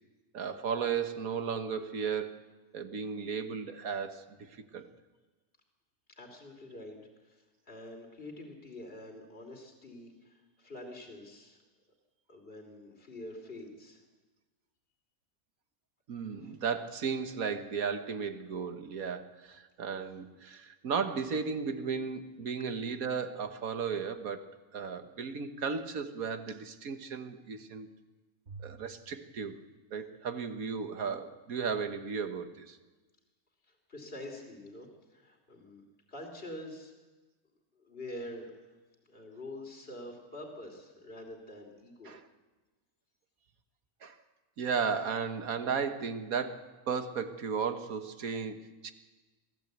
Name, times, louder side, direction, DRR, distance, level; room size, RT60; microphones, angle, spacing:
voice 1, 0.3-2.4 2.7-4.9 16.1-27.9 28.6-29.6 29.9-32.8 42.1-42.2 44.0-44.2 44.6-48.9, right 6 dB, 80° right, 8 dB, 1.8 m, -35 dB
voice 2, 6.2-11.6 12.3-14.0 16.4-16.5 22.6-22.7 33.6-35.8 36.1-36.9 37.7-38.5 39.1-42.2, left 1 dB, 40° left, 3 dB, 3.3 m, -46 dB
Bowed string instrument, 28.5-30.9, right 4 dB, 50° right, 3.0 m, -53 dB
24.0 x 15.5 x 8.1 m, 1.2 s
omnidirectional pair, 1.5 m